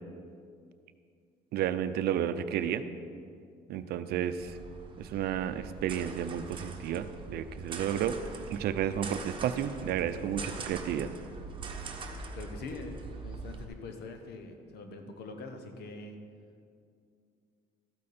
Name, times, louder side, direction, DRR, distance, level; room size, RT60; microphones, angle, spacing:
voice 1, 1.5-2.8 3.7-4.6 5.0-8.2 8.5-11.1, right 10 dB, 70° right, 11 dB, 0.6 m, -32 dB
sound 1, 4.4-13.6, right 3 dB, 30° right, 1.2 m, -42 dB
voice 2, 12.3-16.2, left 3 dB, 70° left, 5 dB, 1.3 m, -43 dB
13.0 x 8.6 x 4.3 m, 2.3 s
cardioid pair, 110°, 17 cm